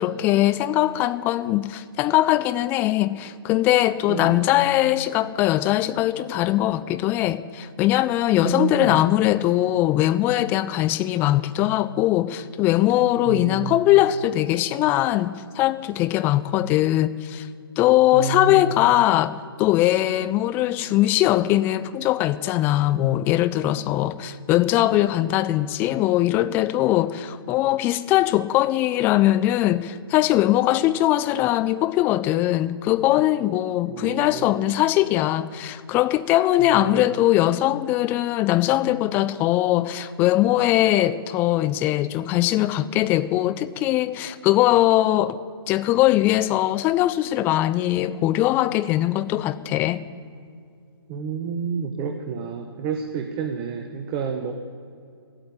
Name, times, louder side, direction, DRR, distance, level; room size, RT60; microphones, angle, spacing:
voice 1, 0.0-17.5 17.8-45.4 45.7-50.0, left 14 dB, 15° left, 0.4 m, -21 dB
voice 2, 4.1-4.4 8.4-9.0 13.2-13.8 18.1-18.9 33.9-34.7 36.6-37.3 51.1-54.5, right 6 dB, 25° right, 1.0 m, -30 dB
15.0 x 8.8 x 9.7 m
figure-of-eight pair, 140°, 13 cm